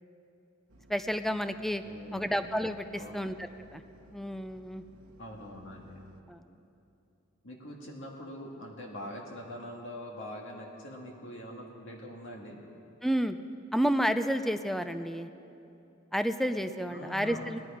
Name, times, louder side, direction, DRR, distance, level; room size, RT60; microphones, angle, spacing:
sound 1, 0.7-6.2, equal, 85° right, 1.1 m, -58 dB
voice 1, 0.9-1.8 2.1-3.4 3.7-3.8 4.1-4.8 6.3-6.5 13.0-13.4 13.7-15.3 16.1-17.6, equal, ahead, 10 dB, 0.4 m, -30 dB
voice 2, 1.8-2.3 2.9-3.3 5.2-6.1 7.4-12.6 16.9-17.6, left 1 dB, 60° left, -1 dB, 1.9 m, -43 dB
20.0 x 11.0 x 5.0 m, 2.8 s
head